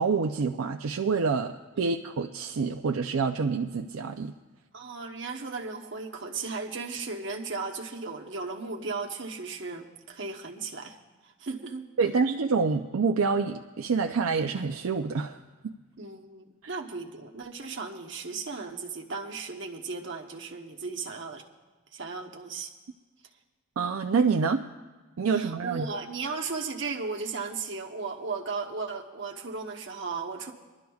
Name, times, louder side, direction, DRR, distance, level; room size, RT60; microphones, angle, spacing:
voice 1, 0.0-4.3 12.0-15.4 16.6-16.7 23.8-24.6 25.2-25.9, right 5 dB, 75° right, 4 dB, 0.5 m, -27 dB
voice 2, 4.7-11.0 11.4-11.9 16.0-21.4 21.9-22.7 25.3-30.5, right 4 dB, 55° right, 1 dB, 1.1 m, -36 dB
24.5 x 12.0 x 2.4 m, 1.3 s
head